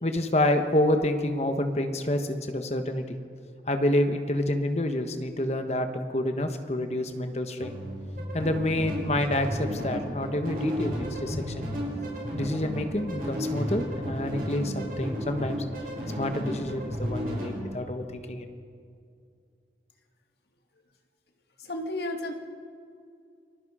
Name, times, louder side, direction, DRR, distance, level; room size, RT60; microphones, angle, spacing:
voice 1, 0.0-3.2 3.7-7.8 8.3-11.7 12.3-15.6 16.2-18.5, left 1 dB, 35° left, 7 dB, 1.3 m, -28 dB
sound 1, 7.6-17.6, equal, 55° right, 6.3 m, -33 dB
voice 2, 21.6-22.3, left 1 dB, 70° left, 4 dB, 1.9 m, -32 dB
29.5 x 22.0 x 5.0 m, 2.4 s
head